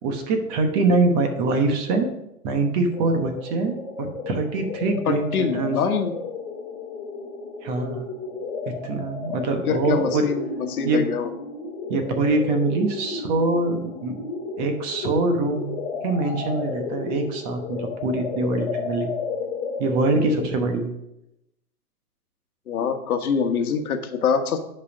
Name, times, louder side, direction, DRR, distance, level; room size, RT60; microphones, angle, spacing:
voice 1, 0.0-2.1 2.4-5.8 7.6-8.0 8.7-10.3 10.8-11.0 11.9-14.1 14.6-15.7 16.0-19.1 19.8-20.9, right 3 dB, 25° right, 5 dB, 1.0 m, -24 dB
sound 1, 2.9-20.5, left 4 dB, 10° left, 0.5 m, -33 dB
voice 2, 5.1-6.1 9.6-11.3 22.7-24.6, left 6 dB, 70° left, 7 dB, 1.4 m, -24 dB
9.9 x 5.5 x 5.0 m, 0.86 s
hypercardioid pair, 150°, 46 cm